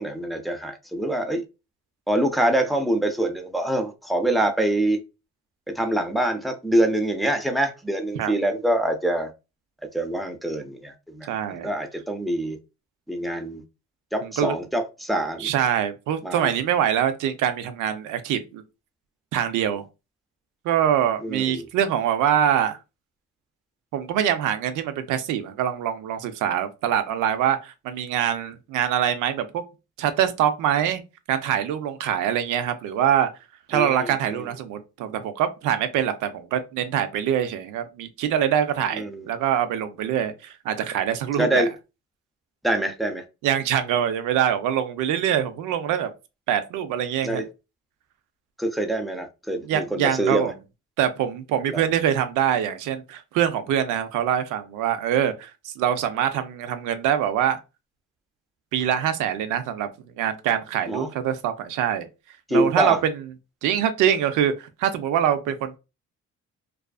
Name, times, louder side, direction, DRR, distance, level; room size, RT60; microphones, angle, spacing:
voice 1, 0.0-1.4 2.1-5.0 5.7-9.3 9.9-12.6 13.1-13.6 14.1-15.5 16.2-16.5 21.2-21.7 33.7-34.5 38.9-39.3 41.4-41.7 42.6-43.2 47.2-47.5 48.6-50.5 51.7-51.8 60.9-61.1 62.5-63.0, right 1 dB, ahead, 0.4 m, -25 dB
voice 2, 11.3-11.7 14.2-14.5 15.4-18.6 19.3-19.8 20.6-22.8 23.9-29.6 30.0-31.0 31.3-33.3 33.7-41.6 43.4-46.1 46.5-47.4 49.6-50.5 51.0-57.6 58.7-59.9 60.2-62.1 62.5-63.2 63.6-65.8, right 9 dB, 90° right, 0.5 m, -24 dB
2.4 x 2.4 x 2.3 m
cardioid pair, 90°, 30 cm